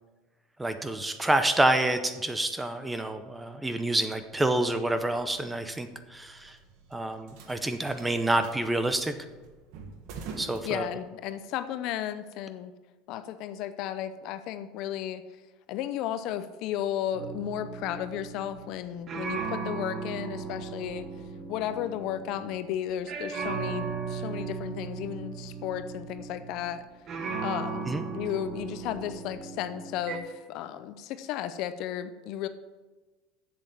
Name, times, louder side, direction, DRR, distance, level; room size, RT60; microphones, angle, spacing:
voice 1, 0.6-6.6 6.9-9.1 10.4-10.9 27.9-28.1, right 1 dB, 10° right, 9 dB, 0.7 m, -28 dB
sound 1, 4.2-11.4, right 5 dB, 65° right, 1.5 m, -48 dB
voice 2, 10.6-12.7 13.1-15.2 15.7-21.1 21.5-26.8 27.4-27.9 28.1-32.5, left 11 dB, 60° left, 12 dB, 0.6 m, -34 dB
sound 2, 17.1-22.7 23.1-30.2, right 5 dB, 40° right, 1.3 m, -37 dB
7.8 x 7.1 x 7.0 m, 1.2 s
supercardioid pair, 130°, 0 cm